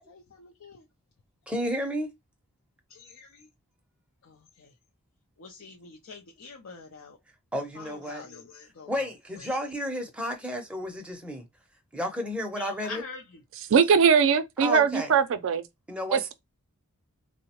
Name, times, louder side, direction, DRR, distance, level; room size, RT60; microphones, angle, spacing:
voice 1, 0.1-0.8 2.9-3.5 4.2-4.7 5.4-7.2 7.8-8.9 12.6-13.2, left 4 dB, 60° left, 0.5 m, -45 dB
voice 2, 1.5-2.1 7.5-8.2 8.6-11.5 11.9-13.0 14.6-15.2 15.9-16.3, equal, 5° right, 0.6 m, -32 dB
voice 3, 13.7-15.6 16.1-16.2, right 6 dB, 60° right, 0.4 m, -20 dB
3.7 x 2.0 x 2.8 m
head